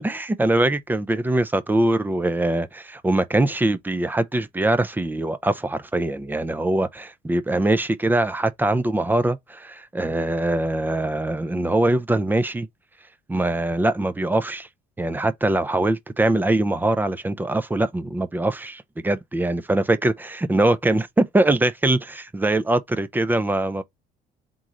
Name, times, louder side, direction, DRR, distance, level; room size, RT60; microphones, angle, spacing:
voice 1, 0.0-12.7 13.3-14.7 15.0-23.8, right 2 dB, 10° right, 0.5 m, -22 dB
3.8 x 3.0 x 3.6 m
cardioid pair, 110°, 17 cm